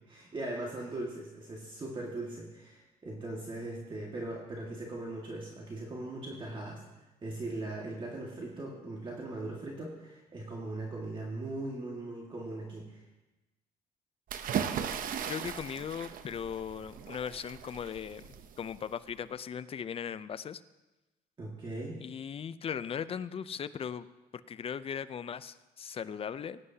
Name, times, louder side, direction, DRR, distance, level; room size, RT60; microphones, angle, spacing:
voice 1, 0.1-13.0 21.4-22.0, right 2 dB, 30° right, -2 dB, 2.0 m, -39 dB
sound 1, 14.3-19.1, right 8 dB, 55° right, 0.8 m, -37 dB
voice 2, 15.2-18.2 18.6-20.6 22.0-24.1 24.3-26.6, left 7 dB, 35° left, 14 dB, 0.5 m, -38 dB
19.5 x 9.7 x 2.8 m, 1.0 s
cardioid pair, 110°, 17 cm